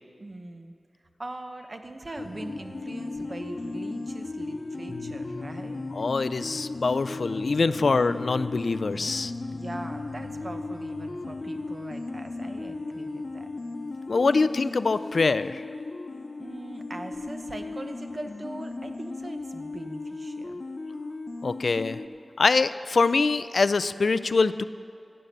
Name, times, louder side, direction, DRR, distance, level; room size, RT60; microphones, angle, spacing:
voice 1, 0.2-0.7 1.2-5.9 9.5-13.5 16.4-20.6, right 2 dB, 45° right, 6 dB, 1.0 m, -41 dB
sound 1, 2.2-22.1, left 3 dB, 55° left, 0.8 m, -36 dB
voice 2, 5.9-9.3 14.1-15.6 21.4-22.0 22.4-24.6, left 4 dB, 80° left, 13 dB, 0.4 m, -24 dB
15.5 x 8.7 x 6.7 m, 2.5 s
wide cardioid pair, 70°, 0 cm